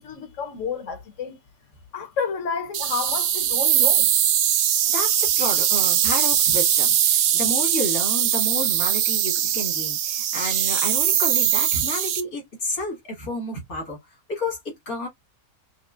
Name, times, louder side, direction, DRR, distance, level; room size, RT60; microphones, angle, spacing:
voice 1, 0.0-1.4 1.9-4.1, left 5 dB, 60° left, 1.2 m, -30 dB
sound 1, 2.7-12.2, right 10 dB, 80° right, 1.1 m, -21 dB
voice 2, 4.5-14.0 14.3-15.1, left 1 dB, 85° left, 2.5 m, -31 dB
5.2 x 2.2 x 2.5 m
omnidirectional pair, 1.5 m